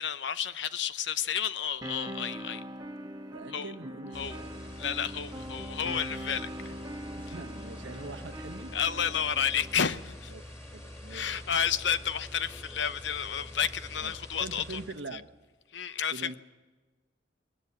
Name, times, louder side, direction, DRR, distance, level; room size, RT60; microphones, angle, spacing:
voice 1, 0.0-2.6 3.5-3.7 4.1-4.4 4.8-6.7 8.7-10.3 11.1-14.8 15.1-15.2 15.7-16.4, left 8 dB, 75° left, 0.8 m, -31 dB
sound 1, 1.8-9.9, equal, 20° right, 1.3 m, -42 dB
voice 2, 3.3-4.5 5.3-5.5 7.2-8.7 10.3-10.4 10.7-11.4 14.0-15.3 16.1-16.4, right 3 dB, 80° right, 1.2 m, -43 dB
sound 2, 4.1-15.1, left 1 dB, 15° left, 3.8 m, -46 dB
20.5 x 18.5 x 8.6 m
head